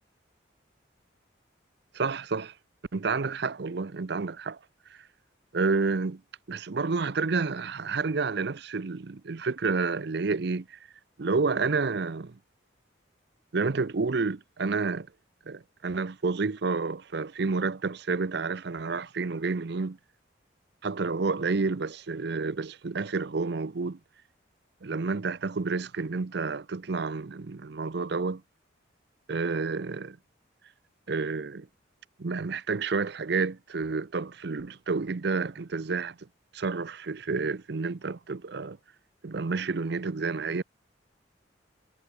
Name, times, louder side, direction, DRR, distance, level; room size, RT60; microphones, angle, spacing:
voice 1, 1.9-2.5 2.9-4.6 5.5-6.2 6.5-10.8 11.2-12.4 13.5-15.1 15.5-20.0 20.8-24.0 24.8-28.4 29.3-30.2 31.1-31.7 32.2-36.2 36.5-38.8 39.2-40.6, right 4 dB, 60° right, 0.6 m, -29 dB
head